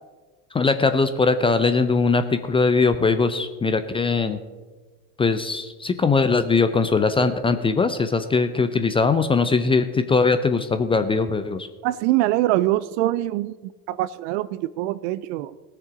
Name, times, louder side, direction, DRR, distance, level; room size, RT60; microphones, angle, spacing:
voice 1, 0.5-4.4 5.2-11.7, left 4 dB, 10° left, 10 dB, 0.5 m, -21 dB
voice 2, 11.8-13.6 13.9-15.5, right 15 dB, 45° right, 17 dB, 0.5 m, -23 dB
18.5 x 6.8 x 5.0 m, 1.3 s
hypercardioid pair, 90°, 48 cm